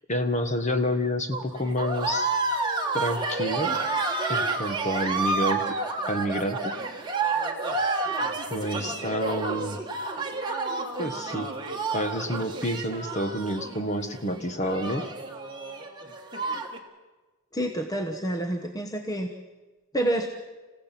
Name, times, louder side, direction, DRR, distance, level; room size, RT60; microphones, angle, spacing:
voice 1, 0.1-2.3 2.9-3.8 4.3-5.6 6.1-6.7 8.5-9.8 11.0-11.5 11.9-15.0, equal, 30° left, 7 dB, 1.5 m, -28 dB
sound 1, 1.3-16.8, right 3 dB, 20° right, 1.7 m, -30 dB
voice 2, 17.5-19.3 19.9-20.3, right 1 dB, 15° left, 4 dB, 1.1 m, -28 dB
27.5 x 16.0 x 5.9 m, 1.2 s
head